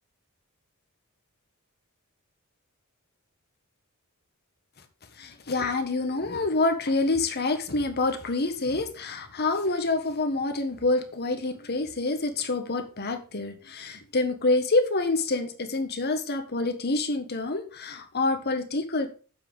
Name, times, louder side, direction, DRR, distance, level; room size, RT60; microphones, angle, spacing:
voice 1, 5.2-19.1, left 2 dB, 50° left, 7 dB, 1.4 m, -27 dB
7.7 x 5.8 x 6.1 m, 0.38 s
head